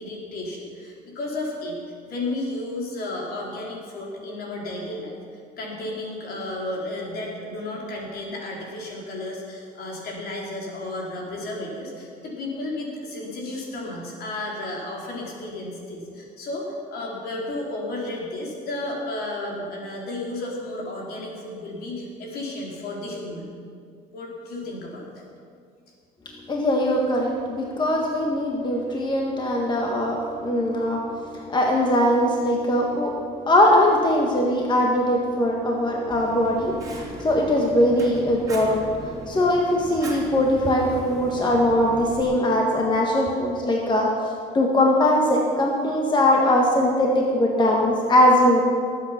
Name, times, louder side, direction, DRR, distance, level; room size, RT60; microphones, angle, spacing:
voice 1, 0.0-1.8 2.1-5.2 5.6-23.5 24.1-25.2, left 2 dB, 65° left, -2 dB, 3.9 m, -33 dB
voice 2, 26.5-31.0 31.3-33.1 33.5-38.9 39.3-44.1 44.5-48.6, left 1 dB, 25° left, 0 dB, 1.6 m, -21 dB
Fire, 36.1-42.2, right 2 dB, 20° right, 2.7 m, -39 dB
19.0 x 8.5 x 5.8 m, 2.2 s
cardioid pair, 110°, 17 cm